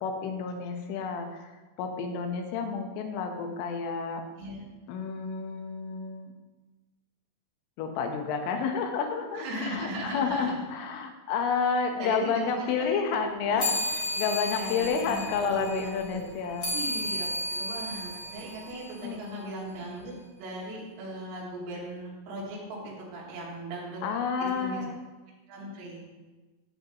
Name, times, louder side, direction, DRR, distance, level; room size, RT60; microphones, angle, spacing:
voice 1, 0.0-1.5 1.8-4.2 4.9-6.3 7.8-16.7 19.0-19.4 24.0-25.0, left 5 dB, 80° left, 4 dB, 3.6 m, -30 dB
voice 2, 9.3-10.7 12.0-13.7 14.5-16.3 16.7-24.0 24.4-24.8 25.5-26.1, right 1 dB, 80° right, -4 dB, 5.2 m, -38 dB
sound 1, 13.6-19.4, left 1 dB, 55° left, 1.0 m, -34 dB
16.0 x 8.3 x 3.0 m, 1.2 s
omnidirectional pair, 5.9 m